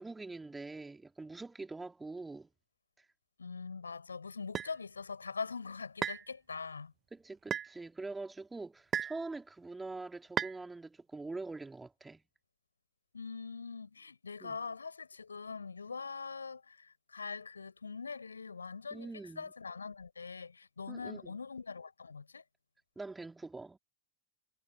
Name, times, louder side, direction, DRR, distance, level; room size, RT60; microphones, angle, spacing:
voice 1, 0.0-2.5 7.1-12.2 14.4-14.6 18.9-19.5 20.9-21.4 23.0-23.8, right 3 dB, 10° right, 3.6 m, -44 dB
voice 2, 3.4-6.9 13.1-22.4, left 5 dB, 75° left, 6.7 m, -43 dB
sound 1, 4.6-4.7 6.0-6.3 7.5-7.7 8.9-9.2 10.4-10.6, right 9 dB, 25° right, 1.2 m, -34 dB
figure-of-eight pair, 90°, 0 cm